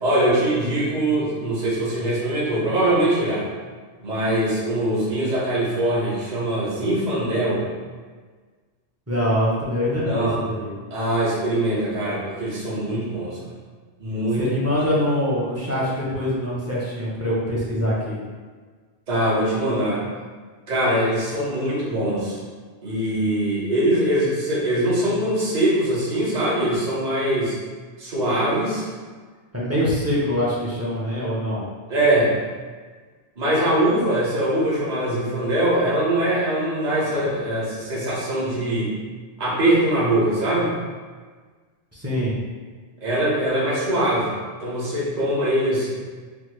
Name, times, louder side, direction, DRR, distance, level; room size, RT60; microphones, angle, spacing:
voice 1, 0.0-3.5 4.0-7.6 10.0-10.4 10.9-13.4 14.0-14.4 19.1-20.0 20.7-22.4 22.8-27.5 28.0-28.9 31.9-32.3 33.4-38.9 39.4-40.7 43.0-44.3 44.6-45.9, right 1 dB, 45° right, -7 dB, 1.0 m, -22 dB
voice 2, 9.1-10.7 14.4-18.2 29.5-31.6 41.9-42.3, equal, 20° right, -8 dB, 0.6 m, -24 dB
3.4 x 2.2 x 3.0 m, 1.5 s
omnidirectional pair, 1.1 m